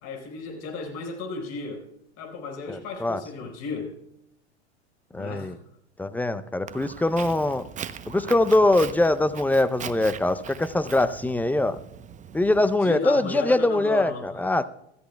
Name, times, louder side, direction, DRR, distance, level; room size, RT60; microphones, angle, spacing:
voice 1, 0.0-1.8 2.2-3.9 5.1-5.5 12.8-14.5, left 4 dB, 45° left, 2 dB, 4.8 m, -34 dB
voice 2, 2.7-3.2 5.1-5.6 6.0-7.7 8.1-11.8 12.3-14.6, left 2 dB, 5° left, 12 dB, 0.6 m, -23 dB
Walk footsteps, 6.7-12.8, right 8 dB, 20° right, 0.8 m, -40 dB
26.0 x 14.0 x 2.3 m, 0.80 s
hypercardioid pair, 90°, 35 cm